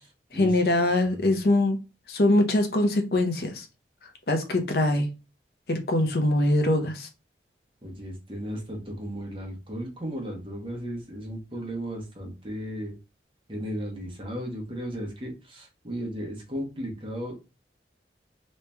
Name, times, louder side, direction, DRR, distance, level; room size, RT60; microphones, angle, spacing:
voice 1, 0.3-1.8 2.1-3.6 4.3-5.1 5.7-7.1, left 1 dB, 60° left, 0.7 m, -23 dB
voice 2, 1.0-1.3 7.8-12.9 13.5-17.3, equal, 30° right, 1.2 m, -35 dB
3.2 x 2.9 x 3.4 m
head